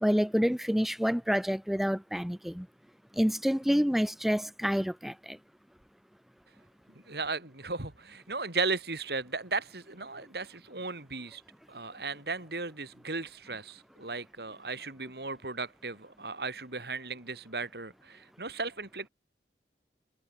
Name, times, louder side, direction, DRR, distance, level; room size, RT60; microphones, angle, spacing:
voice 1, 0.0-2.7 3.2-5.4, equal, ahead, 0.4 m, -28 dB
voice 2, 7.0-11.4 11.7-19.1, right 3 dB, 65° right, 3.5 m, -36 dB
head